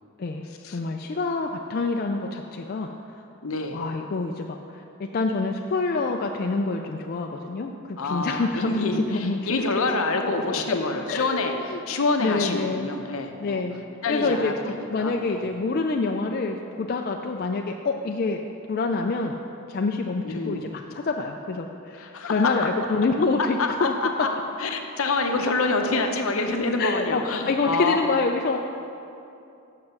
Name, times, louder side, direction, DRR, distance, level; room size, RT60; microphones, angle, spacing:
voice 1, 0.2-2.9 3.7-9.4 10.2-10.8 11.1-11.8 12.2-12.9 13.4-18.4 18.7-19.4 19.7-23.9 26.8-28.6, left 3 dB, 40° left, 2 dB, 0.3 m, -27 dB
voice 2, 3.4-3.8 8.0-13.6 14.0-15.5 20.2-20.6 21.9-22.9 23.4-24.3 24.6-28.1, left 3 dB, 70° left, 4 dB, 0.7 m, -27 dB
7.5 x 5.8 x 6.5 m, 2.7 s
head